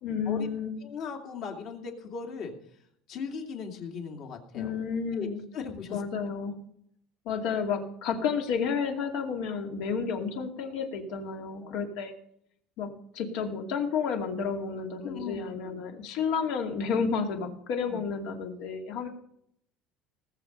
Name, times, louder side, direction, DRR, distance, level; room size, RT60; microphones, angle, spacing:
voice 1, 0.0-0.8 4.5-5.5 5.9-6.6 7.3-12.1 12.8-19.1, left 6 dB, 60° left, 3 dB, 2.5 m, -31 dB
voice 2, 0.8-2.5 3.1-4.7 5.1-6.0 11.6-11.7 15.0-15.8 17.9-18.0, left 5 dB, 45° left, 3 dB, 2.6 m, -38 dB
19.0 x 7.4 x 5.4 m, 0.70 s
cardioid pair, 170°, 0 cm